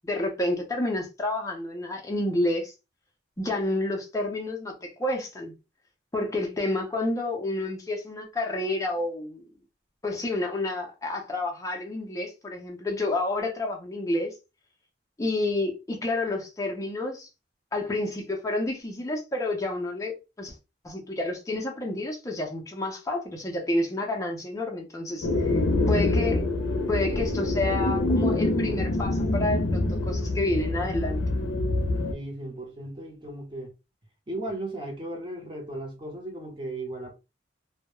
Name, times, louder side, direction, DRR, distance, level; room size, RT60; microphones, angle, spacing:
voice 1, 0.0-2.7 3.4-5.5 6.1-9.4 10.0-14.3 15.2-17.3 17.7-20.5 20.8-25.5 25.9-26.5 26.9-31.2, left 2 dB, 15° left, 0.5 m, -29 dB
sound 1, 25.2-32.1, left 2 dB, 85° left, 0.5 m, -25 dB
voice 2, 32.1-33.7 34.3-37.1, right 1 dB, 25° right, 0.7 m, -36 dB
2.2 x 2.0 x 2.9 m
head